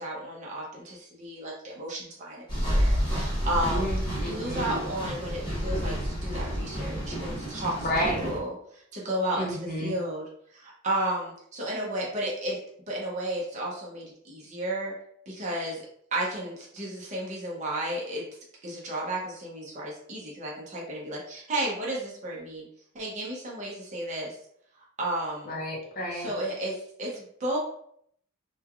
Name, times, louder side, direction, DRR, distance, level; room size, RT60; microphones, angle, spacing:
voice 1, 0.0-3.9 4.2-7.9 8.2-10.2 10.5-12.6 12.9-14.9 15.3-15.8 16.1-18.2 18.6-22.7 22.9-24.3 25.0-25.5 26.1-27.6, right 1 dB, 35° right, -4 dB, 0.6 m, -33 dB
sound 1, 2.5-8.4, equal, 20° left, 1.1 m, -29 dB
voice 2, 3.7-4.6 7.8-8.3 9.3-9.9 25.5-26.3, equal, 40° left, -3 dB, 0.8 m, -31 dB
3.2 x 2.2 x 2.3 m, 0.68 s
head